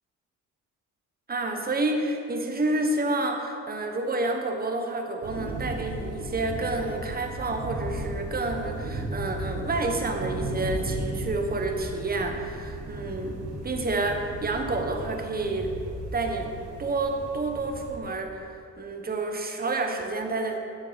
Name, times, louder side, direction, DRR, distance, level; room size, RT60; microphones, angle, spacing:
voice 1, 1.3-13.4 13.6-15.7 16.1-16.5 16.8-18.5 18.8-20.6, right 2 dB, 30° right, 3 dB, 1.3 m, -29 dB
sound 1, 5.2-18.0, right 1 dB, 80° right, 1.6 m, -35 dB
11.0 x 6.5 x 5.2 m, 2.6 s
cardioid pair, 90°, 30 cm